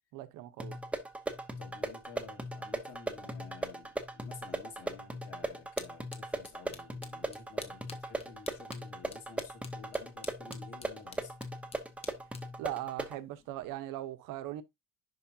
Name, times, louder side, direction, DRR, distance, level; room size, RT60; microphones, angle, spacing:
voice 1, 0.1-0.8 12.6-14.6, right 14 dB, 70° right, 1.1 m, -39 dB
sound 1, 0.6-13.2, right 1 dB, 5° right, 0.8 m, -39 dB
voice 2, 1.6-11.4, left 6 dB, 45° left, 2.3 m, -52 dB
sound 2, 5.1-13.8, left 4 dB, 20° left, 1.0 m, -52 dB
11.0 x 4.7 x 2.8 m
cardioid pair, 170°, 33 cm